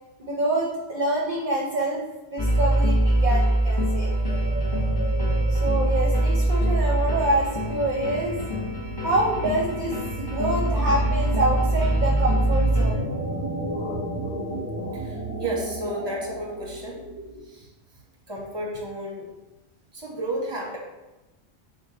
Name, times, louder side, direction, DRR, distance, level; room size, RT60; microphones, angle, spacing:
voice 1, 0.2-2.0 2.3-4.1 5.5-8.4 9.0-13.0, right 1 dB, 50° right, -2 dB, 0.7 m, -26 dB
sound 1, 2.4-12.9, right 1 dB, 25° left, 0.8 m, -23 dB
sound 2, 3.8-17.5, right 1 dB, 85° left, 1.2 m, -34 dB
voice 2, 14.9-17.0 17.4-17.7 18.3-19.3 19.9-20.8, right 1 dB, 25° right, -1 dB, 0.9 m, -32 dB
4.7 x 2.4 x 3.8 m, 1.1 s
omnidirectional pair, 1.1 m